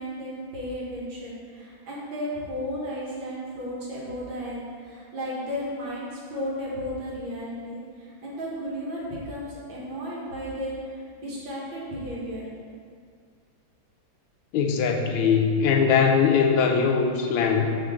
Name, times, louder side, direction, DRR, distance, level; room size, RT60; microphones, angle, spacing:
voice 1, 0.0-12.5, equal, 70° right, -5 dB, 2.0 m, -34 dB
voice 2, 14.5-17.8, left 6 dB, 90° left, 3 dB, 1.4 m, -21 dB
6.4 x 4.4 x 3.6 m, 2.1 s
omnidirectional pair, 2.2 m